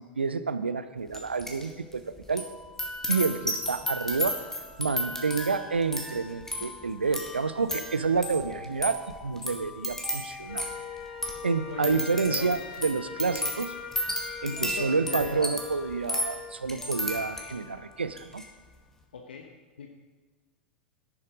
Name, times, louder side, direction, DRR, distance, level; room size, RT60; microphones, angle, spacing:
voice 1, 0.0-2.5 3.1-4.4 4.8-10.7 11.4-13.7 14.4-18.4, right 4 dB, 85° right, 12 dB, 0.6 m, -29 dB
sound 1, 1.1-1.7 1.9-17.7 18.1-18.4, left 1 dB, 10° left, 2.2 m, -34 dB
Wind instrument woodwind instrument, 10.5-16.6, left 5 dB, 60° left, 1.5 m, -42 dB
voice 2, 11.7-12.0 12.3-12.5 13.3-13.4 14.4-15.6 19.1-19.5 19.8-19.9, left 6 dB, 75° left, 3 dB, 1.1 m, -38 dB
11.0 x 11.0 x 5.0 m, 1.3 s
figure-of-eight pair, 85°, 6 cm